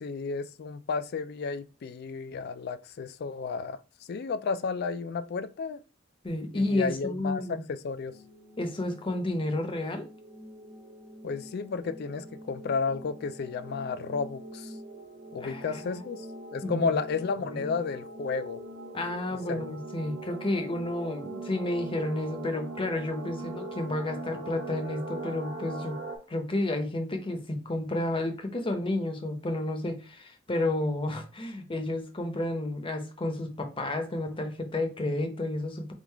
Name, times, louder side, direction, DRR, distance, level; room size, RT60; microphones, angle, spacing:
voice 1, 0.0-3.8 4.1-5.8 6.5-8.2 11.2-14.7 15.3-16.3 16.5-18.6 19.3-19.6, left 5 dB, 55° left, 0.4 m, -32 dB
voice 2, 6.2-7.6 8.6-10.1 15.4-16.0 16.6-17.0 17.5-17.7 18.9-26.0 26.3-35.9, left 1 dB, 25° left, 0.7 m, -31 dB
sound 1, 7.8-26.2, right 2 dB, 60° right, 1.3 m, -42 dB
3.6 x 2.4 x 4.5 m
head